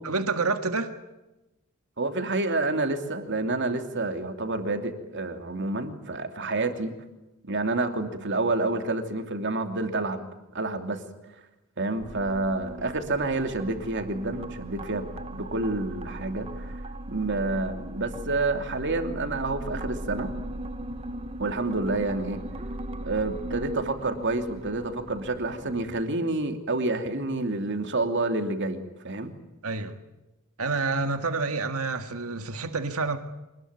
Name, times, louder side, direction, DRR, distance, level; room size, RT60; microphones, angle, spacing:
voice 1, 0.0-0.9 29.6-30.0 30.6-33.2, right 3 dB, 80° right, 1.9 m, -28 dB
voice 2, 2.0-6.9 7.4-10.2 10.5-11.0 11.8-15.1 15.3-16.8 17.1-20.3 21.4-22.4 23.0-29.3, right 2 dB, 55° right, 2.8 m, -28 dB
sound 1, 12.0-26.0, right 1 dB, 25° right, 1.0 m, -38 dB
25.5 x 20.5 x 9.6 m
head